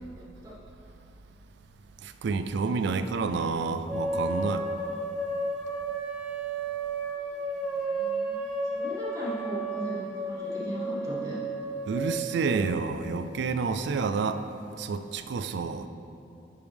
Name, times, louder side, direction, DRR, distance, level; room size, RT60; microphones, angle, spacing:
voice 1, 2.0-4.7 11.9-14.4 14.8-15.9, right 4 dB, 70° right, 9 dB, 0.4 m, -29 dB
sound 1, 3.9-12.8, right 2 dB, 5° right, 0.6 m, -32 dB
voice 2, 7.1-8.4 8.7-11.4, left 1 dB, 20° right, -8 dB, 1.8 m, -38 dB
11.0 x 5.2 x 3.4 m, 2.8 s
head